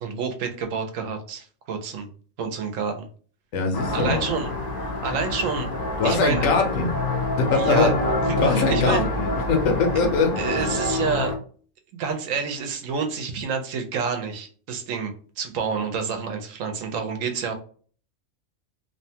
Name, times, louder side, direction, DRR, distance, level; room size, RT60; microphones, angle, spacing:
voice 1, 0.0-2.1 2.4-3.1 3.9-4.5 5.0-5.7 6.0-6.4 7.5-7.9 8.4-9.1 10.4-11.3 11.9-17.5, right 5 dB, 85° right, 1.0 m, -28 dB
voice 2, 3.5-4.2 6.0-6.9 7.4-8.0 8.4-10.7, left 3 dB, 85° left, 1.1 m, -22 dB
sound 1, 3.7-11.4, left 2 dB, 55° left, 0.4 m, -27 dB
2.8 x 2.2 x 2.7 m
omnidirectional pair, 1.3 m